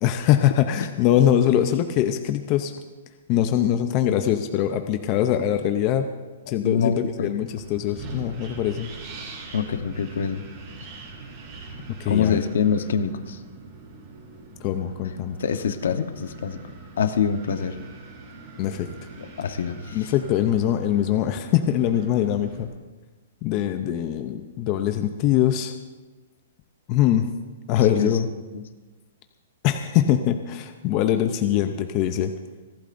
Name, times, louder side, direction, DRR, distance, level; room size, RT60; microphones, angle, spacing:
voice 1, 0.0-2.7 3.3-6.1 6.5-8.9 12.0-12.4 14.6-15.4 18.6-18.9 19.9-22.7 23.4-25.7 26.9-27.3 27.7-28.3 29.6-32.3, left 11 dB, 25° left, 7 dB, 0.5 m, -22 dB
voice 2, 6.6-7.4 9.5-10.4 12.1-13.4 15.4-16.6 17.0-17.8 19.2-20.0 27.7-28.1 28.5-28.6, left 6 dB, 65° left, 9 dB, 1.0 m, -25 dB
Wind, 7.5-22.6, right 3 dB, 30° right, 3.0 m, -42 dB
30.0 x 12.0 x 2.6 m, 1.2 s
hypercardioid pair, 180°, 0 cm